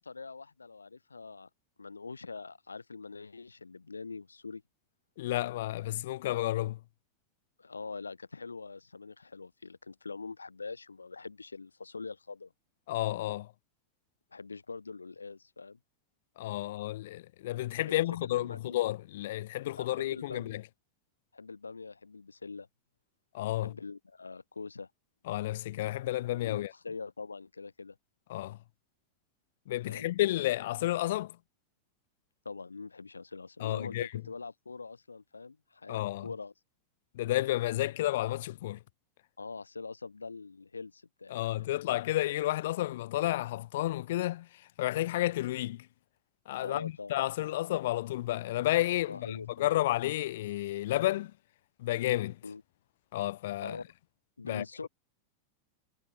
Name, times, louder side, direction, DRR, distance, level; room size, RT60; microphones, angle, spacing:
voice 1, 0.0-1.5 1.8-4.6 7.6-12.5 14.3-15.8 17.9-18.9 19.8-20.6 21.3-22.7 23.6-24.9 26.3-28.0 29.9-30.1 32.5-36.5 39.4-41.7 46.6-47.2 49.0-49.9 52.4-52.6 53.6-53.9 54.4-54.9, left 4 dB, 75° left, 2.0 m, -44 dB
voice 2, 5.2-6.8 12.9-13.5 16.4-20.6 23.3-23.7 25.3-26.7 28.3-28.6 29.7-31.4 33.6-34.1 35.9-36.3 37.1-38.8 41.3-44.5 44.8-45.8 46.5-51.3 51.8-52.4 53.1-53.8 54.4-54.6, left 15 dB, 55° left, 1.4 m, -31 dB
figure-of-eight pair, 90°, 0 cm